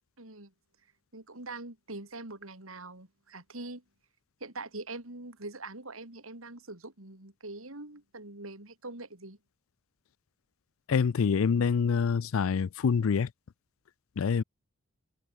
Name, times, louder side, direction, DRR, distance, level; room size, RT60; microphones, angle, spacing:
voice 1, 0.2-0.5 1.1-3.8 4.4-9.4, right 2 dB, 75° right, 3.7 m, -43 dB
voice 2, 10.9-13.3 14.2-14.4, left 6 dB, 75° left, 0.4 m, -26 dB
head